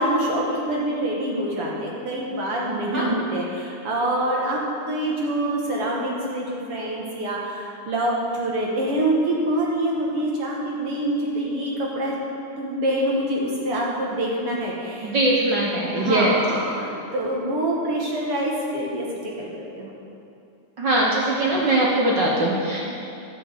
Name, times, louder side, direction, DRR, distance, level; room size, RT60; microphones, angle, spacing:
voice 1, 0.0-12.1 12.6-15.1 16.0-19.5 19.8-19.9 22.8-22.9, right 1 dB, 55° right, -3 dB, 1.9 m, -25 dB
voice 2, 15.0-16.4 20.8-22.8, right 1 dB, 75° right, -3 dB, 1.0 m, -21 dB
11.5 x 6.2 x 7.8 m, 2.7 s
omnidirectional pair, 3.5 m